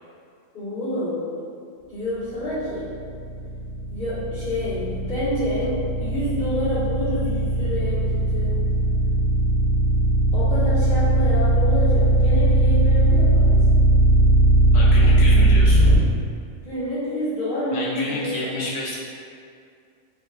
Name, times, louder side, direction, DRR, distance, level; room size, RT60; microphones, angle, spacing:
voice 1, 0.5-1.2 1.9-2.9 3.9-8.6 10.3-13.6 16.6-18.5, left 1 dB, 50° left, -15 dB, 1.8 m, -28 dB
sound 1, 2.7-16.0, right 2 dB, 70° right, 1.4 m, -18 dB
voice 2, 14.7-15.8 17.7-19.0, left 1 dB, 70° left, -5 dB, 1.0 m, -30 dB
3.6 x 2.8 x 2.4 m, 2.3 s
omnidirectional pair, 1.3 m